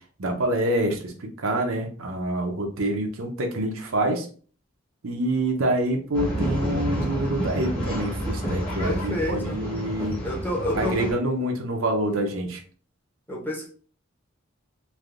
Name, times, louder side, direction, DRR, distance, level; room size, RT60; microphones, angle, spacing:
voice 1, 0.2-4.3 5.0-10.2 10.7-12.6, right 1 dB, 80° right, 3 dB, 0.7 m, -26 dB
Male speech man speaking / Chatter / Rattle, 6.1-11.1, equal, 25° left, 1.1 m, -29 dB
voice 2, 8.8-9.6 10.2-11.1 13.3-13.7, equal, 10° left, -2 dB, 0.7 m, -29 dB
3.4 x 2.5 x 2.4 m, 0.42 s
head